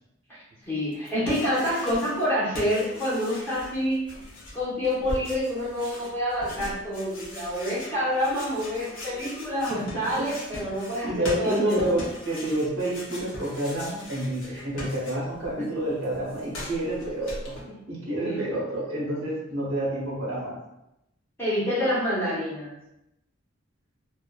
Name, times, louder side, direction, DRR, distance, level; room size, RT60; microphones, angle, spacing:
voice 1, 0.7-4.0 4.5-11.8 14.5-14.6 15.6-15.7 17.7-17.8 18.2-18.4 21.4-22.7, equal, 10° left, -10 dB, 1.0 m, -27 dB
sound 1, 0.9-2.3 2.5-15.5 15.8-17.6, left 1 dB, 80° left, 0.8 m, -40 dB
voice 2, 11.0-17.5 17.9-20.6, right 1 dB, 90° right, -4 dB, 0.9 m, -29 dB
2.5 x 2.4 x 2.2 m, 0.86 s
head